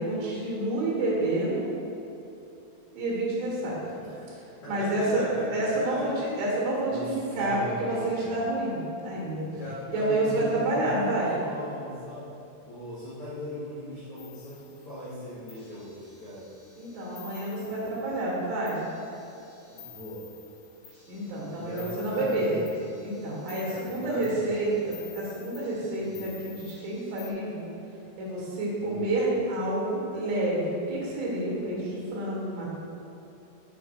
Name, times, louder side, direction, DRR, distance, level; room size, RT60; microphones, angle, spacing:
voice 1, 0.0-1.7 2.9-4.4 4.7-5.2 5.5-9.5 9.9-11.3 16.8-18.8 21.1-22.5 23.0-27.7 28.2-32.7, right 1 dB, 60° right, -5 dB, 3.3 m, -29 dB
voice 2, 4.6-6.1 6.8-8.4 9.4-12.3 12.6-16.6 17.6-18.3 19.7-20.3 21.5-22.7 23.6-24.8 26.0-26.3 28.8-29.1, left 1 dB, 85° left, -10 dB, 1.2 m, -39 dB
sound 1, 14.2-15.0 15.5-18.3 18.7-27.3, left 6 dB, 45° left, 2.4 m, -51 dB
6.8 x 5.6 x 4.6 m, 2.8 s
omnidirectional pair, 4.8 m